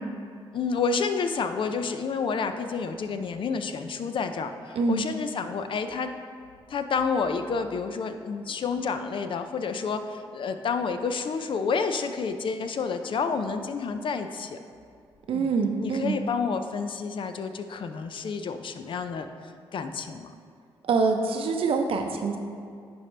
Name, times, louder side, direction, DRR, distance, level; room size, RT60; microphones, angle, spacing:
voice 1, 0.5-6.1 6.7-14.6 15.3-15.5 15.8-20.3, left 5 dB, 55° left, 8 dB, 0.5 m, -29 dB
voice 2, 15.3-16.2 20.8-22.4, right 4 dB, 65° right, 4 dB, 0.7 m, -25 dB
10.0 x 4.3 x 3.3 m, 2.3 s
cardioid pair, 65°, 10 cm